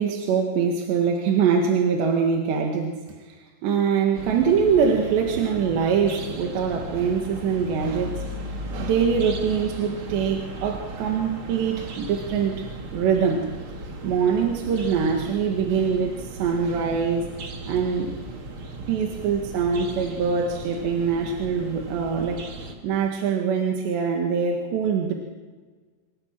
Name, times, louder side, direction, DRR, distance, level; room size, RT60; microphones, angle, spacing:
voice 1, 0.0-3.4 3.6-8.2 8.7-12.6 12.9-13.5 13.8-17.4 17.7-18.1 18.9-22.4 22.8-25.2, right 6 dB, 80° right, 1 dB, 4.1 m, -23 dB
sound 1, 4.1-22.7, right 2 dB, 35° right, 2.5 m, -36 dB
26.5 x 16.5 x 7.6 m, 1.4 s
omnidirectional pair, 5.0 m